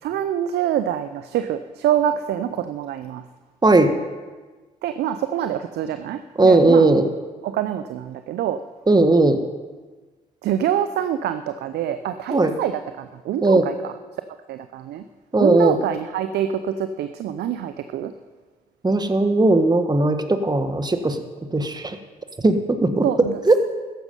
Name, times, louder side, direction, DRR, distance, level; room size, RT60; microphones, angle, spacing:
voice 1, 0.0-3.2 4.8-6.9 7.4-8.6 10.4-13.9 14.5-15.0 15.4-18.1 23.0-23.6, right 10 dB, 65° right, 10 dB, 0.6 m, -25 dB
voice 2, 6.4-7.1 8.9-9.4 12.3-12.5 13.4-13.6 15.3-15.8 18.8-21.2 21.5-21.9 22.4-23.0 23.5-23.6, right 2 dB, 20° right, 8 dB, 1.5 m, -17 dB
14.0 x 10.5 x 5.5 m, 1.3 s
hypercardioid pair, 45°, 18 cm